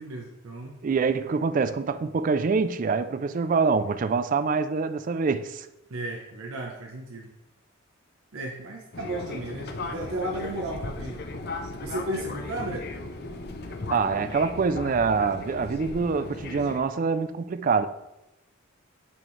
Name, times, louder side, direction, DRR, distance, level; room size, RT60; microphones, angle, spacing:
voice 1, 0.0-0.8 5.9-7.3 8.3-11.2 11.8-12.9, right 1 dB, 75° right, 0.7 m, -34 dB
voice 2, 0.8-5.7 13.9-17.9, right 5 dB, 40° right, 0.3 m, -25 dB
Fixed-wing aircraft airplane, 8.9-16.8, left 3 dB, 50° left, 0.6 m, -37 dB
8.8 x 4.4 x 3.2 m
head